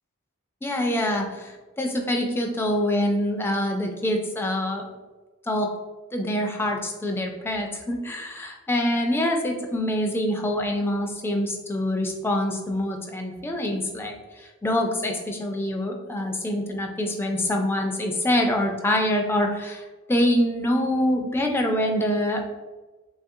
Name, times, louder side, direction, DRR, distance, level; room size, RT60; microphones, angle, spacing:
voice 1, 0.6-4.8 5.4-5.7 6.1-22.4, left 1 dB, 10° left, 2 dB, 0.3 m, -25 dB
3.4 x 2.4 x 2.6 m, 1.3 s
head